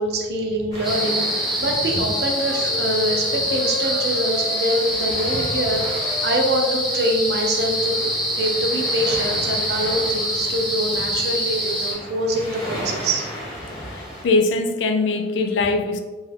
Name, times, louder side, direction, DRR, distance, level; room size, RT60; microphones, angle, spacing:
voice 1, 0.0-8.0 8.4-13.3, right 1 dB, 60° right, 0.5 m, -24 dB
sound 1, 0.7-14.2, equal, 20° left, 1.0 m, -36 dB
sound 2, 0.8-11.9, equal, ahead, 0.4 m, -25 dB
Wind instrument woodwind instrument, 1.9-4.9 5.2-8.5, left 2 dB, 40° left, 0.8 m, -35 dB
voice 2, 13.9-16.0, left 3 dB, 75° left, 0.3 m, -21 dB
2.8 x 2.3 x 3.3 m
head